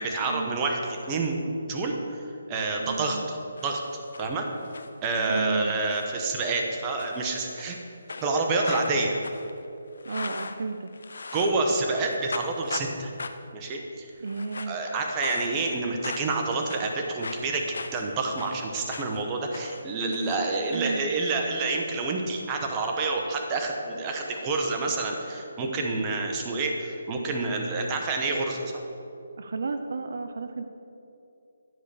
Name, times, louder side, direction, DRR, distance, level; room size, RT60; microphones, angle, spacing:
voice 1, 0.0-1.4 1.7-3.4 3.6-4.5 5.0-7.8 8.2-9.2 11.3-13.1 13.5-14.1 14.7-28.8, right 3 dB, 20° right, 2 dB, 1.1 m, -28 dB
voice 2, 2.8-3.2 5.3-5.7 10.1-10.9 14.2-14.8 20.7-21.0 29.4-30.6, right 4 dB, 65° right, 8 dB, 0.5 m, -32 dB
sound 1, 3.6-4.3 4.6-5.4 5.9-6.1 6.4-6.6 7.0-7.8 8.1-11.7 11.9-12.9 13.2-13.6 14.2-14.8 15.2-15.8 16.0-19.3 19.5-21.0, left 3 dB, 70° left, 0.6 m, -39 dB
11.0 x 5.0 x 6.9 m, 2.7 s
hypercardioid pair, 155°, 0 cm